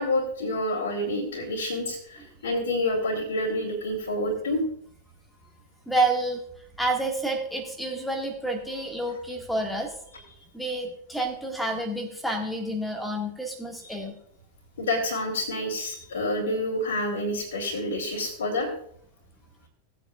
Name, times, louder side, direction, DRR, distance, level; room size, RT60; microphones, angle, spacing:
voice 1, 0.0-4.6 13.8-14.0 14.8-18.7, left 1 dB, 65° left, -6 dB, 2.6 m, -28 dB
voice 2, 5.9-6.4 6.8-9.9 10.5-14.2, right 2 dB, ahead, 2 dB, 2.0 m, -29 dB
17.5 x 8.4 x 2.5 m, 0.64 s
figure-of-eight pair, 90°, 0 cm